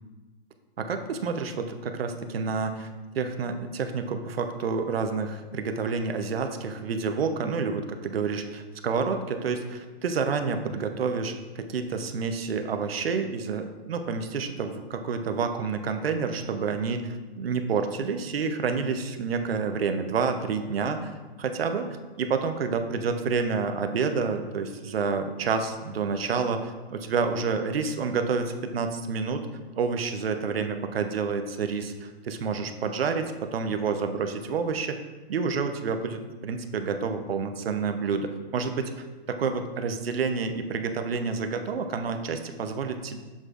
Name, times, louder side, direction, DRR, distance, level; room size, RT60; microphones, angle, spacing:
voice 1, 0.8-2.9 3.1-21.1 21.4-29.4 29.8-35.0 35.3-43.2, right 5 dB, 70° right, 7 dB, 0.8 m, -29 dB
7.3 x 6.5 x 2.5 m, 1.3 s
hypercardioid pair, 170°, 31 cm